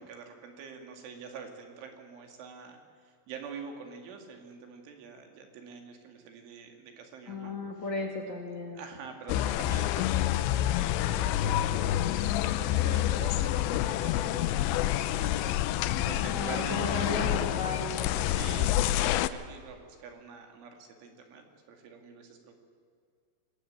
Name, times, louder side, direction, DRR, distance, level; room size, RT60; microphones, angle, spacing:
voice 1, 0.0-7.9 8.8-15.5 16.0-17.6 18.2-22.5, right 6 dB, 70° right, 4 dB, 4.8 m, -46 dB
voice 2, 7.3-8.8 16.2-18.6, left 3 dB, 45° left, 1 dB, 2.9 m, -35 dB
sound 1, 9.3-19.3, left 13 dB, 80° left, 2.6 m, -28 dB
26.5 x 19.5 x 8.9 m, 2.1 s
omnidirectional pair, 5.8 m